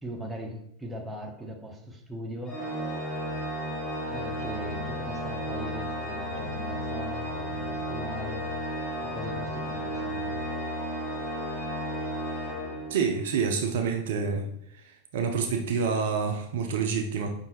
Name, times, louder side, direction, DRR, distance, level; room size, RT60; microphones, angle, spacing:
voice 1, 0.0-2.6 4.1-8.5 9.0-10.4, equal, 10° right, 1 dB, 0.8 m, -40 dB
Organ, 2.5-13.3, equal, 10° left, 1.4 m, -33 dB
voice 2, 12.9-14.5 14.8-17.3, right 5 dB, 55° right, 4 dB, 0.5 m, -28 dB
5.4 x 2.6 x 3.0 m, 0.78 s
figure-of-eight pair, 90°, 0 cm